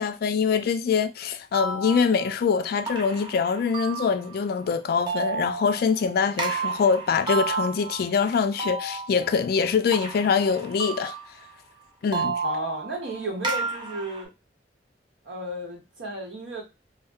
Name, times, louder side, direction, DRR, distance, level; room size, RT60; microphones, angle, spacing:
voice 1, 0.0-11.1 12.0-12.4, left 6 dB, 55° left, 0.3 m, -24 dB
sound 1, 1.5-4.7 5.1-11.6 12.1-14.2, right 4 dB, 25° right, 0.5 m, -32 dB
voice 2, 12.4-14.3 15.2-16.6, equal, 85° right, 1.1 m, -33 dB
2.2 x 2.1 x 3.4 m
head